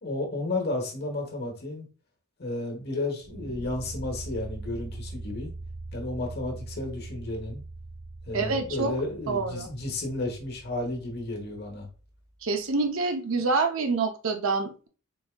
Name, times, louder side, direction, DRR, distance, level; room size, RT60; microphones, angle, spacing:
voice 1, 0.0-1.9 2.4-5.5 5.9-7.6 8.3-11.9, left 2 dB, 50° left, 1 dB, 1.1 m, -32 dB
sound 1, 3.2-12.2, right 2 dB, 55° right, 1.0 m, -42 dB
voice 2, 8.3-9.0 9.3-9.7 12.4-14.9, right 4 dB, 70° right, 6 dB, 0.6 m, -27 dB
4.0 x 3.5 x 2.2 m, 0.36 s
head